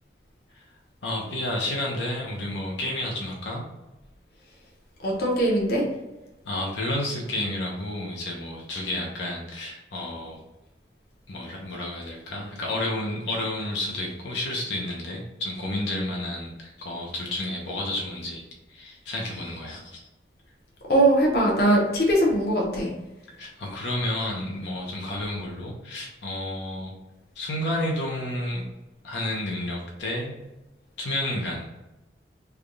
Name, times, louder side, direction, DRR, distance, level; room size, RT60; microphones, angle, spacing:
voice 1, 1.0-3.6 6.4-10.4 11.3-18.4 18.7-20.0 23.4-26.9 27.4-28.6 29.0-30.3 31.0-31.6, left 1 dB, 85° left, -2 dB, 0.7 m, -31 dB
voice 2, 5.0-5.8 20.8-22.9, right 1 dB, 55° left, -2 dB, 0.8 m, -21 dB
3.4 x 2.3 x 3.8 m, 1.0 s
head